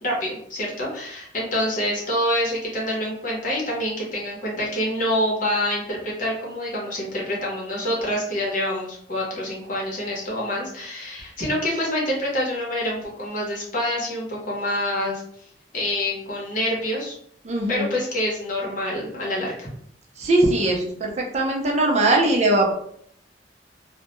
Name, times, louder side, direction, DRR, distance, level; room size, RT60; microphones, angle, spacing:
voice 1, 0.0-15.2 15.7-17.1 17.7-19.7, left 1 dB, 50° left, -3 dB, 0.8 m, -26 dB
voice 2, 17.4-18.0 20.2-22.7, right 2 dB, 40° right, 0 dB, 0.5 m, -20 dB
2.2 x 2.1 x 2.9 m, 0.66 s
head